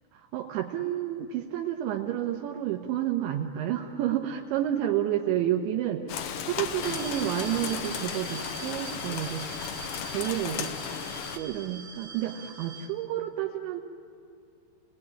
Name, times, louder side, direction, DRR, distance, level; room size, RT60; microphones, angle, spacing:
voice 1, 0.1-6.0 6.4-9.4 10.1-10.9 11.3-13.8, right 11 dB, 80° right, 2 dB, 3.3 m, -30 dB
Rain, 6.1-11.4, left 8 dB, 80° left, 1.8 m, -35 dB
sound 1, 6.8-12.9, right 5 dB, 50° right, 1.7 m, -43 dB
28.5 x 18.0 x 10.0 m, 2.3 s
omnidirectional pair, 5.4 m